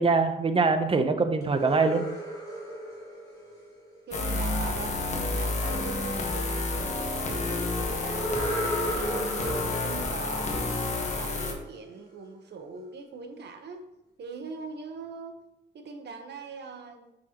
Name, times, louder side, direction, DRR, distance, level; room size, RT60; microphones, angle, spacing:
voice 1, 0.0-2.0, right 4 dB, 30° right, 8 dB, 0.7 m, -23 dB
sound 1, 1.4-4.4 8.0-11.7, right 1 dB, 20° left, 2.2 m, -35 dB
sound 2, 4.1-11.5, left 2 dB, 35° left, 1.1 m, -30 dB
voice 2, 4.1-9.5 9.8-13.8 14.2-15.4 15.7-17.1, right 4 dB, 60° right, 6 dB, 1.0 m, -42 dB
6.4 x 6.1 x 3.0 m, 0.86 s
cardioid pair, 105°, 19 cm